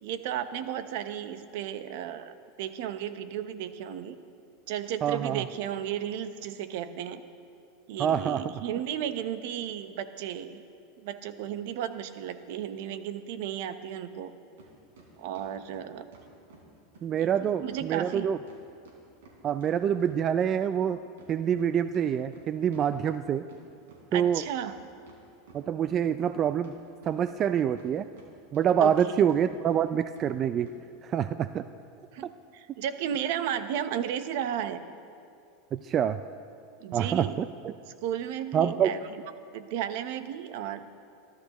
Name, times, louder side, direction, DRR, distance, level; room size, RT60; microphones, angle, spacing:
voice 1, 0.0-4.2 4.7-7.2 7.9-10.6 11.0-14.3 15.2-16.1 17.2-17.3 17.6-18.3 24.1-24.7 28.8-29.2 32.1-34.8 36.8-37.4 38.0-39.2 39.5-40.9, right 10 dB, 70° right, 11 dB, 0.9 m, -34 dB
voice 2, 5.0-5.5 8.0-8.5 17.0-18.4 19.4-21.0 21.3-23.4 24.1-24.4 25.5-26.7 27.0-28.1 28.5-30.7 31.0-31.6 32.2-32.3 35.7-36.2 36.9-37.7 38.5-38.9, right 9 dB, 35° right, 12 dB, 0.4 m, -26 dB
sound 1, 14.6-14.7 15.0-16.7 16.9-17.0 17.3-17.4 17.7-17.8 18.1-20.5 20.8-23.6 23.9-24.0 24.3-25.2 25.5-26.4 26.6-28.3 28.5-29.0 29.3-29.4 29.7-29.8 30.2-30.3 30.6-30.8, right 3 dB, 85° right, 4.3 m, -53 dB
28.5 x 12.5 x 3.0 m, 2.5 s
supercardioid pair, 125°, 0 cm